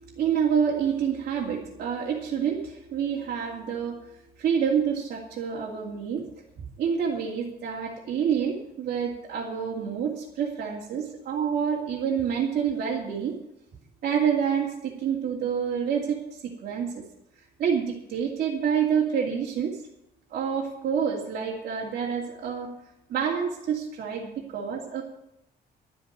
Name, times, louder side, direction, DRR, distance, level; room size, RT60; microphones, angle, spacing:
voice 1, 0.0-4.0 4.4-6.3 6.6-13.4 14.0-17.0 17.6-19.8 20.3-22.7 23.1-25.0, right 7 dB, 65° right, -4 dB, 2.6 m, -28 dB
12.0 x 7.9 x 9.2 m, 0.83 s
cardioid pair, 145°, 17 cm